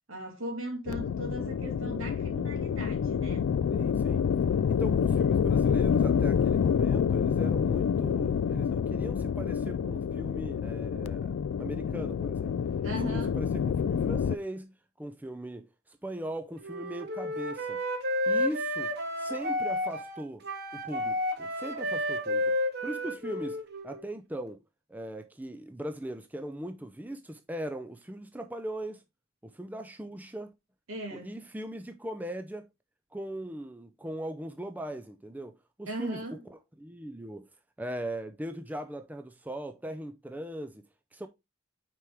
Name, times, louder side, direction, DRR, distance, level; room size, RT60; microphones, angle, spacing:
voice 1, 0.1-3.5 12.8-13.4 30.9-31.4 35.9-36.4, right 1 dB, 80° right, 2.2 m, -38 dB
sound 1, 0.9-14.4, left 7 dB, 80° left, 0.3 m, -27 dB
voice 2, 3.7-4.2 4.7-12.6 12.9-17.8 18.3-20.4 20.7-22.6 22.8-23.6 23.8-24.6 24.9-29.0 29.4-30.5 31.1-32.7 33.1-37.5 37.8-40.8 41.1-41.3, right 1 dB, 10° right, 0.4 m, -39 dB
Wind instrument woodwind instrument, 16.6-24.1, left 1 dB, 50° right, 1.1 m, -31 dB
5.8 x 4.6 x 3.4 m
head